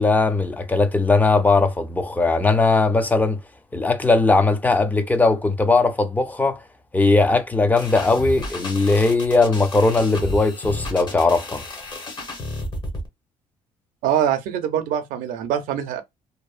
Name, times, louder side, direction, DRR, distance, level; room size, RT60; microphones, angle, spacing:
voice 1, 0.0-3.4 3.7-6.6 6.9-11.6, left 3 dB, 10° left, 0.4 m, -19 dB
sound 1, 7.8-13.1, equal, 30° left, 0.9 m, -32 dB
voice 2, 14.0-16.0, right 9 dB, 85° right, 0.5 m, -23 dB
2.6 x 2.0 x 2.4 m
cardioid pair, 115°, 14 cm